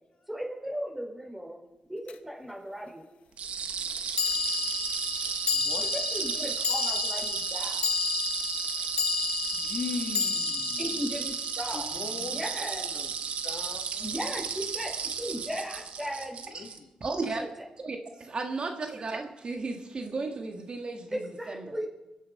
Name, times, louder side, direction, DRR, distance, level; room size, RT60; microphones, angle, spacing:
voice 1, 0.3-1.6 1.9-3.0 5.9-7.8 10.8-11.8 12.2-12.8 14.0-16.4 17.3-17.5 21.1-21.9, equal, 10° right, -1 dB, 5.2 m, -36 dB
sound 1, 2.1-2.2 4.2-12.6, left 6 dB, 80° left, 0.9 m, -32 dB
sound 2, 3.4-16.8, right 6 dB, 80° right, 1.3 m, -33 dB
voice 2, 5.5-5.9 9.5-10.8 11.7-13.1 13.4-14.1 16.5-16.9, left 4 dB, 60° left, 2 dB, 2.2 m, -39 dB
voice 3, 17.0-17.5 17.8-21.2 21.5-21.8, right 3 dB, 50° right, 4 dB, 1.6 m, -34 dB
23.0 x 8.3 x 5.4 m, 1.0 s
cardioid pair, 70°, 2 cm